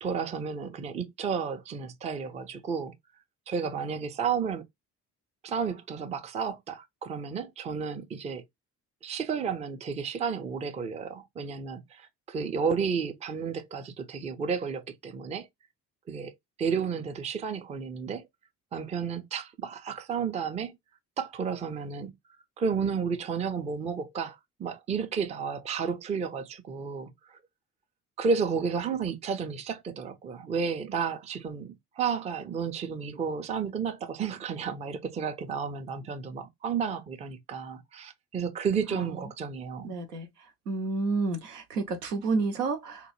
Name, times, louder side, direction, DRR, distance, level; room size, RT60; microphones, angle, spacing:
voice 1, 0.0-2.9 3.5-4.6 5.4-8.4 9.0-15.5 16.1-16.3 16.6-18.3 18.7-20.8 21.2-22.1 22.6-27.4 28.2-40.0, right 6 dB, 15° right, 0.4 m, -32 dB
voice 2, 39.8-40.3 40.7-43.0, right 3 dB, 80° right, 0.6 m, -29 dB
2.9 x 2.1 x 2.9 m
figure-of-eight pair, 45°, 46 cm